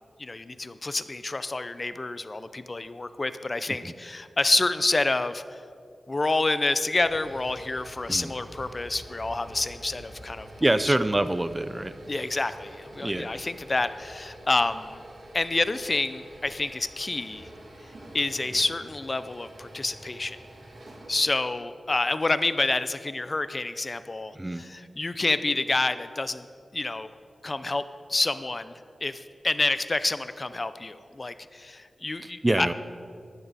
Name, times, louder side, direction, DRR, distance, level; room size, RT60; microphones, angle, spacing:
voice 1, 0.2-5.4 6.1-10.5 10.9-11.0 12.1-15.0 15.3-17.5 18.1-20.4 21.1-26.5 26.7-27.1 27.4-27.8 28.1-28.7 29.0-32.7, left 2 dB, 40° left, 13 dB, 0.5 m, -28 dB
sound 1, 6.9-21.3, right 1 dB, 65° right, 2.8 m, -46 dB
voice 2, 10.6-11.9 13.0-13.3 24.4-24.6 32.2-32.7, right 1 dB, 20° right, 13 dB, 0.5 m, -25 dB
15.0 x 12.0 x 4.1 m, 2.3 s
wide cardioid pair, 70°, 0 cm